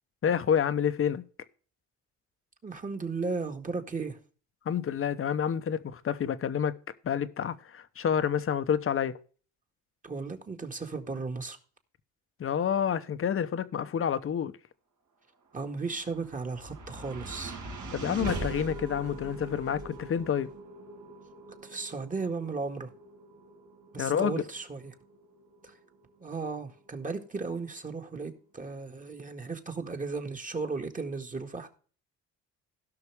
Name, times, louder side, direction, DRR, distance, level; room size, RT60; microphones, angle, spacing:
voice 1, 0.2-1.2 4.7-6.8 7.0-9.2 12.4-14.5 17.9-20.5 24.0-24.3, left 8 dB, 45° left, 0.9 m, -28 dB
voice 2, 2.6-4.2 10.0-11.6 15.5-17.6 21.6-22.9 23.9-24.9 25.6-25.7 26.2-31.7, right 4 dB, 25° right, 1.9 m, -35 dB
sound 1, 15.7-28.0, right 3 dB, 70° right, 3.6 m, -43 dB
17.0 x 5.9 x 3.4 m
cardioid pair, 90°, 30 cm